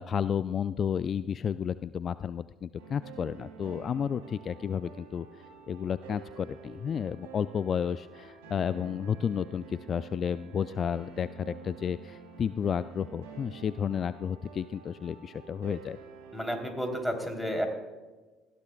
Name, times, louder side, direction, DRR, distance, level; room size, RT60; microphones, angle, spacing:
voice 1, 0.0-5.3 5.7-16.0, left 7 dB, 45° left, 15 dB, 0.3 m, -32 dB
sound 1, 2.8-17.0, right 5 dB, 80° right, 3.2 m, -48 dB
voice 2, 16.3-17.7, equal, ahead, 3 dB, 3.4 m, -31 dB
19.5 x 14.5 x 2.3 m, 1.2 s
hypercardioid pair, 55°, 0 cm